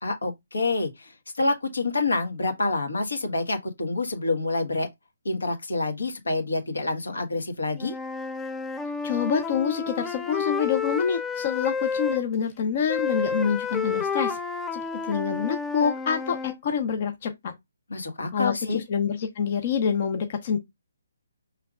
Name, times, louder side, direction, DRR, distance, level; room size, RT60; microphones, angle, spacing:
voice 1, 0.0-1.1 1.4-4.9 5.2-7.9 17.9-18.8, left 3 dB, 90° left, 1.6 m, -27 dB
Wind instrument woodwind instrument, 7.8-12.2 12.9-16.6, left 5 dB, 5° left, 0.3 m, -30 dB
voice 2, 9.0-14.4 14.7-17.5 18.3-20.6, left 7 dB, 40° left, 0.7 m, -27 dB
5.1 x 3.3 x 2.4 m
hypercardioid pair, 160°, 0 cm